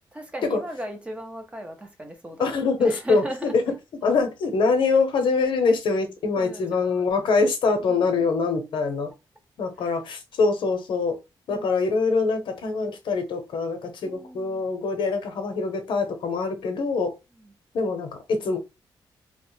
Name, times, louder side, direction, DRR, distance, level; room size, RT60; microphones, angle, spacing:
voice 1, 0.1-3.7 6.4-7.4 7.8-8.2 9.8-10.0 11.5-12.0 14.0-14.7 17.4-17.5, right 1 dB, 15° right, 0.5 m, -38 dB
voice 2, 2.4-3.6 4.0-9.1 9.6-11.2 11.5-17.1 17.7-18.6, left 4 dB, 70° left, 0.7 m, -24 dB
2.8 x 2.0 x 3.1 m
wide cardioid pair, 180°, 9 cm